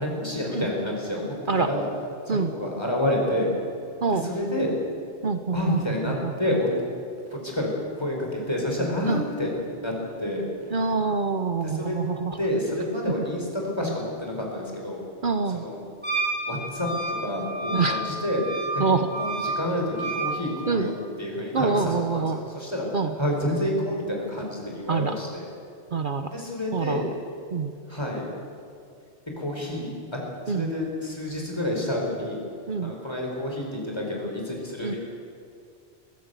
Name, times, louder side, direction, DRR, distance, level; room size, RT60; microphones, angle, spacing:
voice 1, 0.0-1.9 2.3-3.5 4.1-4.7 5.5-6.7 7.3-7.7 8.0-9.9 10.2-10.8 11.6-15.0 15.5-15.9 16.4-16.9 17.2-18.5 18.7-18.8 19.2-22.9 23.2-25.4 26.3-27.0 27.9-28.3 29.4-29.9 30.5-32.4 32.8-35.0, left 1 dB, 25° left, -1 dB, 4.8 m, -29 dB
voice 2, 5.2-6.3 9.1-9.2 10.7-12.4 15.2-15.7 17.6-18.0 18.8-19.1 20.7-20.9 21.5-22.4 22.9-23.2 24.9-25.2 25.9-26.3 26.7-27.1 27.5-27.7 30.5-30.7 32.7-32.9 34.8-34.9, right 4 dB, 55° right, 9 dB, 1.0 m, -26 dB
Wind instrument woodwind instrument, 16.0-20.3, right 2 dB, 10° right, 7.2 m, -30 dB
22.5 x 15.5 x 8.2 m, 2.4 s
omnidirectional pair, 1.1 m